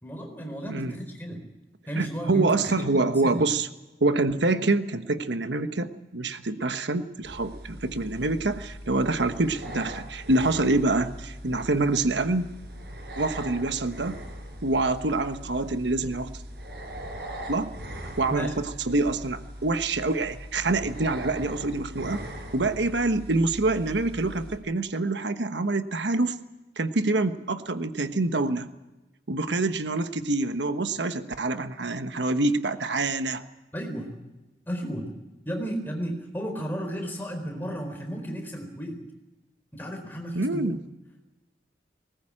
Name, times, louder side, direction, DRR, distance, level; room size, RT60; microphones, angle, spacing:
voice 1, 0.0-1.4 1.9-3.4 18.3-18.5 33.7-34.2 34.7-35.1 35.4-39.0 39.7-40.8, equal, 10° left, 3 dB, 4.2 m, -33 dB
voice 2, 2.0-3.7 4.0-12.5 13.2-14.2 14.6-16.3 17.5-17.7 18.2-22.2 22.5-26.4 26.8-28.7 29.3-33.4 40.3-40.8, right 2 dB, 90° right, 10 dB, 1.2 m, -26 dB
sound 1, 7.2-24.6, equal, 70° right, 5.1 m, -40 dB
20.0 x 19.5 x 8.8 m, 1.0 s
head